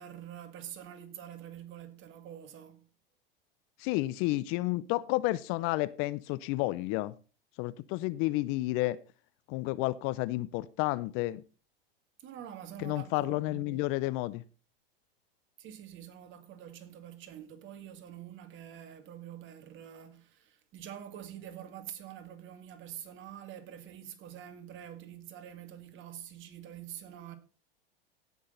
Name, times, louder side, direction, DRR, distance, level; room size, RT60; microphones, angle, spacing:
voice 1, 0.0-2.9 12.2-13.8 15.6-27.4, right 10 dB, 40° right, 2.2 m, -46 dB
voice 2, 3.8-7.1 7.6-9.0 9.5-11.4 12.8-14.4, left 19 dB, 45° left, 0.6 m, -31 dB
17.5 x 6.3 x 3.9 m
hypercardioid pair, 105°, 29 cm